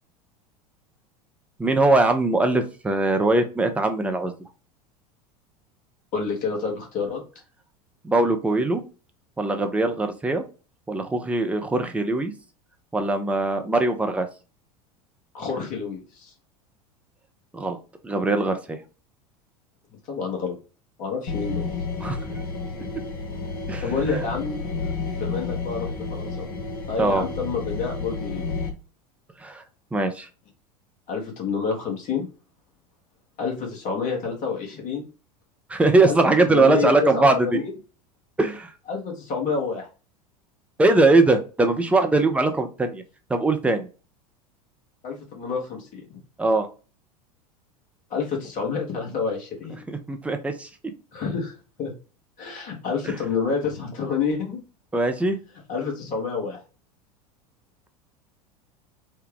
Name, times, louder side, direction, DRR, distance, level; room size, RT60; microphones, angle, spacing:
voice 1, 1.6-4.3 8.0-8.8 9.4-10.4 10.9-12.3 12.9-14.3 17.5-17.8 18.0-18.8 22.0-22.4 23.7-24.2 27.0-27.2 29.4-29.6 29.9-30.3 35.7-37.6 38.4-38.7 40.8-43.0 43.3-43.9 46.4-46.7 49.9-50.7 53.0-53.2 54.9-55.4, right 2 dB, 5° right, 5 dB, 0.5 m, -21 dB
voice 2, 6.1-7.2 15.3-16.3 20.1-20.5 21.0-21.7 23.8-24.6 25.2-26.5 26.9-28.4 31.1-32.3 33.4-35.0 36.1-37.7 38.9-39.9 45.0-46.2 48.1-49.8 51.1-51.9 52.4-54.6 55.7-56.6, left 5 dB, 40° left, 1 dB, 1.3 m, -28 dB
sound 1, 21.3-28.7, left 4 dB, 65° left, 0.7 m, -31 dB
3.4 x 2.2 x 3.3 m, 0.35 s
figure-of-eight pair, 80°, 20 cm